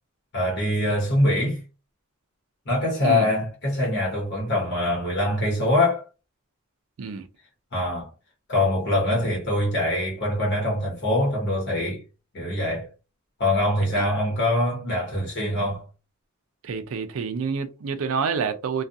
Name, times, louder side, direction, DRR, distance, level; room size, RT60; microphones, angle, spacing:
voice 1, 0.3-1.6 2.7-6.0 7.7-8.1 8.5-12.0 12.3-12.9 13.4-15.8, left 1 dB, 50° left, 1.0 m, -23 dB
voice 2, 16.6-18.8, right 5 dB, 70° right, 0.4 m, -28 dB
2.4 x 2.3 x 2.6 m
head